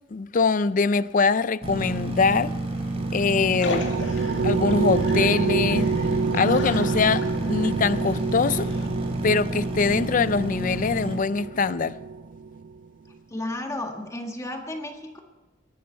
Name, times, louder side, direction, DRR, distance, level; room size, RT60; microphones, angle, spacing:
voice 1, 0.1-2.5 3.1-3.9 4.4-5.9 6.3-8.7 9.2-12.0, left 4 dB, 45° left, 0.5 m, -23 dB
sound 1, 1.6-11.2, right 2 dB, 35° right, 3.1 m, -29 dB
sound 2, 3.0-12.7, right 5 dB, 80° right, 0.4 m, -28 dB
sound 3, 3.6-8.9, left 2 dB, 75° left, 1.9 m, -37 dB
voice 2, 13.3-15.2, left 1 dB, 15° left, 1.6 m, -33 dB
21.5 x 11.5 x 4.5 m
head